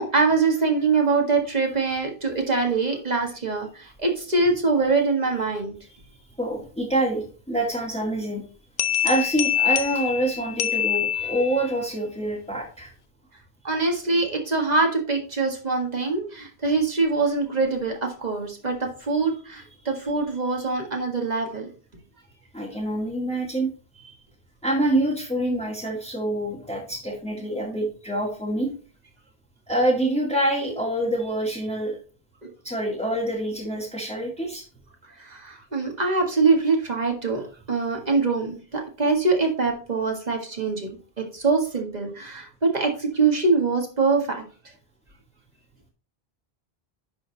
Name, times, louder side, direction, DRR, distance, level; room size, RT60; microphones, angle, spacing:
voice 1, 0.0-5.7 13.6-21.7 32.4-32.5 35.2-40.9 41.2-44.4, right 4 dB, 40° right, 2 dB, 1.9 m, -24 dB
voice 2, 6.4-8.4 9.0-12.9 22.5-23.7 24.0-24.1 24.6-28.7 29.7-32.0 32.6-34.6, right 1 dB, 5° left, -5 dB, 1.9 m, -26 dB
sound 1, 8.8-11.7, left 10 dB, 65° left, 0.8 m, -25 dB
11.0 x 3.9 x 4.0 m, 0.38 s
omnidirectional pair, 1.0 m